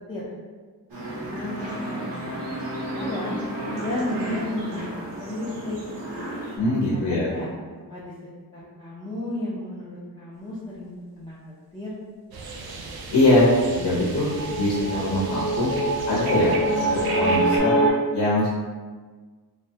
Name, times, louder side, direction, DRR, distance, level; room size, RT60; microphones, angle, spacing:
sound 1, 0.9-6.6, right 1 dB, 85° right, 0.8 m, -33 dB
voice 1, 1.0-3.4 3.8-5.8 6.9-8.1 8.5-11.4 11.7-11.9, left 1 dB, 10° left, -8 dB, 0.4 m, -33 dB
voice 2, 6.6-7.3 13.1-15.7 16.1-16.5 16.9-17.8 18.1-18.5, left 1 dB, 75° left, -6 dB, 0.8 m, -22 dB
sound 2, 12.3-17.6, right 3 dB, 60° right, 0.5 m, -36 dB
sound 3, 14.2-17.9, right 1 dB, 40° left, 0.7 m, -24 dB
3.1 x 2.1 x 2.7 m, 1.5 s
wide cardioid pair, 120°, 41 cm